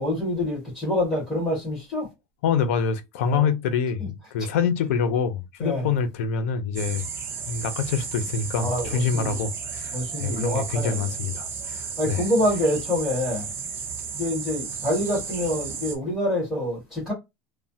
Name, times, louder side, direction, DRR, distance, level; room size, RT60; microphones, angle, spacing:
voice 1, 0.0-2.1 3.2-3.5 4.0-4.1 4.4-4.5 5.6-5.9 8.6-9.5 9.9-11.1 12.0-13.5 14.1-17.1, left 1 dB, 15° left, 1.6 m, -26 dB
voice 2, 2.4-7.1 7.5-12.2, left 6 dB, 85° left, 0.6 m, -26 dB
sound 1, 6.7-15.9, right 6 dB, 35° right, 0.8 m, -34 dB
3.1 x 2.1 x 2.7 m
supercardioid pair, 145°, 7 cm